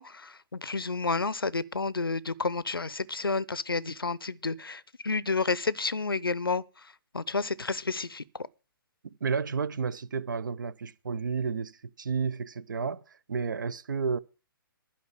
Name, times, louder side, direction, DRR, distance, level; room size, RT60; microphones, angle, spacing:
voice 1, 0.0-6.6 7.1-8.2, left 4 dB, 75° left, 0.7 m, -30 dB
voice 2, 9.2-13.0 13.3-14.2, right 5 dB, 60° right, 0.7 m, -31 dB
12.0 x 5.6 x 9.1 m
figure-of-eight pair, 125°, 12 cm